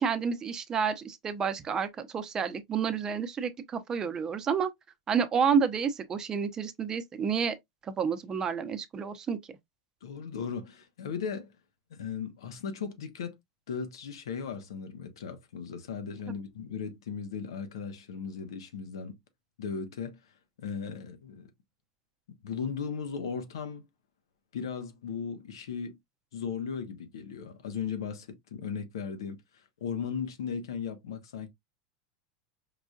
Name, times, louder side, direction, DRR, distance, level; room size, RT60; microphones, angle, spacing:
voice 1, 0.0-4.7 5.1-7.6 7.8-9.4, right 6 dB, 25° right, 0.6 m, -29 dB
voice 2, 10.0-11.5 11.9-13.4 13.7-19.2 19.6-20.2 20.6-21.5 22.4-23.9 24.5-26.0 26.3-29.4 29.8-31.5, left 6 dB, 90° left, 0.9 m, -37 dB
4.8 x 2.6 x 2.3 m
supercardioid pair, 120°, 2 cm